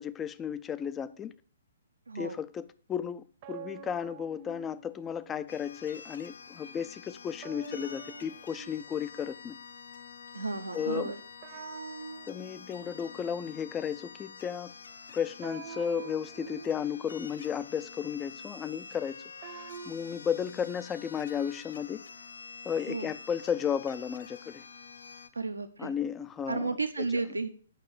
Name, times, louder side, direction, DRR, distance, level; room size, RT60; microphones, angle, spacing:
voice 1, 0.0-1.3 2.1-9.6 10.7-11.1 12.3-14.7 15.1-22.0 22.6-24.6 25.8-27.1, left 8 dB, 15° left, 0.5 m, -34 dB
voice 2, 2.1-2.4 10.3-11.2 22.9-23.1 25.3-25.9 26.5-27.5, right 3 dB, 75° right, 0.8 m, -33 dB
sound 1, 3.4-5.7 7.4-9.5 11.4-13.5 15.4-17.4 19.4-19.9, right 5 dB, 35° right, 0.9 m, -46 dB
sound 2, 5.5-25.3, left 5 dB, 60° left, 0.7 m, -48 dB
9.0 x 6.0 x 6.6 m
figure-of-eight pair, 125°, 0 cm